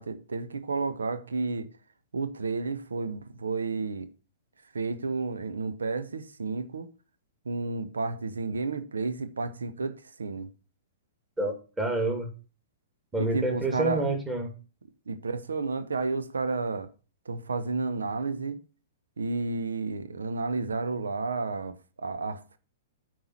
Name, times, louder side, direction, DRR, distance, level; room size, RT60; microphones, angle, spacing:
voice 1, 0.0-1.7 2.1-4.1 4.7-6.9 7.4-10.5 13.2-14.0 15.1-16.9 17.3-18.6 19.2-22.6, right 3 dB, 70° right, 1.0 m, -31 dB
voice 2, 11.4-12.3 13.1-14.5, right 2 dB, 10° right, 2.6 m, -28 dB
8.7 x 4.7 x 7.2 m
figure-of-eight pair, 110°, 0 cm